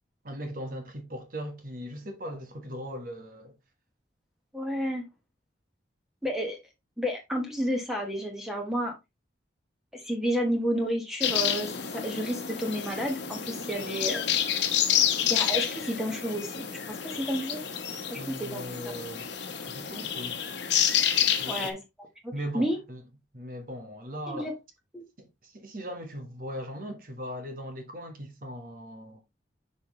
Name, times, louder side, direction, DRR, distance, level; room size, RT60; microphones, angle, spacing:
voice 1, 0.2-3.5 18.2-19.2 19.7-20.4 21.4-21.7 22.3-23.0 23.3-24.5 25.2-29.2, equal, 45° right, 1.3 m, -39 dB
voice 2, 4.5-5.1 6.2-6.6 7.0-8.9 9.9-14.2 15.2-17.6 18.1-18.6 21.5-22.8 24.3-24.5 24.9-25.0, equal, ahead, 1.3 m, -31 dB
sound 1, 11.2-21.7, left 9 dB, 70° left, 1.0 m, -29 dB
6.1 x 5.4 x 3.1 m
head